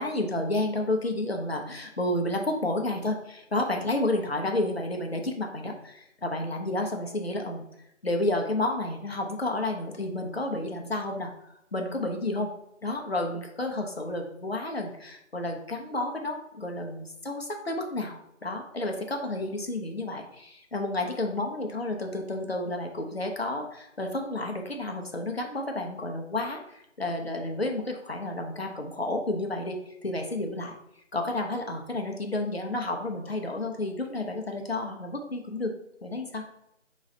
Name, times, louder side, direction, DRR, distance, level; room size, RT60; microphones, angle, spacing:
voice 1, 0.0-7.6 8.0-11.3 11.7-12.5 12.8-30.7 31.1-35.7 36.0-36.4, left 2 dB, 50° left, 3 dB, 0.7 m, -31 dB
4.4 x 3.1 x 3.8 m, 0.79 s
figure-of-eight pair, 165°, 39 cm